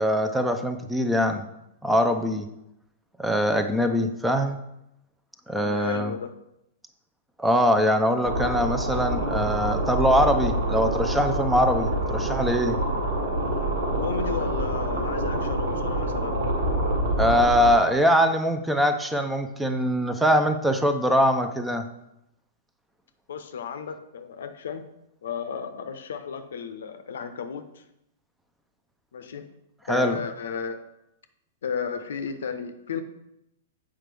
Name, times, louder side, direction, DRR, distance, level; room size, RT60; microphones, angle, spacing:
voice 1, 0.0-1.4 1.8-2.5 3.2-4.6 5.5-6.1 7.4-12.8 17.2-21.9 29.9-30.2, equal, 5° right, 7 dB, 0.6 m, -22 dB
voice 2, 5.5-6.3 14.0-16.4 23.3-24.8 25.2-27.8 29.1-29.5 29.9-30.8 31.6-33.0, left 6 dB, 65° left, 9 dB, 0.6 m, -33 dB
sound 1, 8.2-17.7, right 1 dB, 65° right, 1.9 m, -26 dB
7.5 x 4.9 x 3.4 m, 0.83 s
figure-of-eight pair, 105°, 0 cm